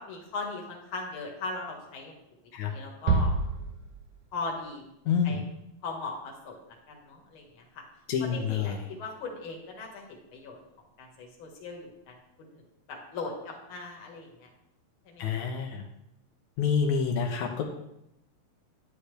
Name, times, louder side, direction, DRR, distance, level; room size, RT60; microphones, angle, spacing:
voice 1, 0.0-2.1 2.6-3.3 4.3-4.8 5.2-5.4 5.8-6.6 6.9-7.8 8.2-10.6 11.0-12.1 12.4-12.5 12.9-14.5 15.1-15.5, left 3 dB, 50° left, 0 dB, 2.3 m, -39 dB
sound 1, 3.1-4.5, right 4 dB, 85° right, 2.6 m, -28 dB
voice 2, 5.1-5.4 8.1-8.8 15.2-15.8 16.6-17.6, left 6 dB, 85° left, 2 dB, 2.4 m, -27 dB
9.9 x 9.7 x 3.4 m, 0.83 s
omnidirectional pair, 3.3 m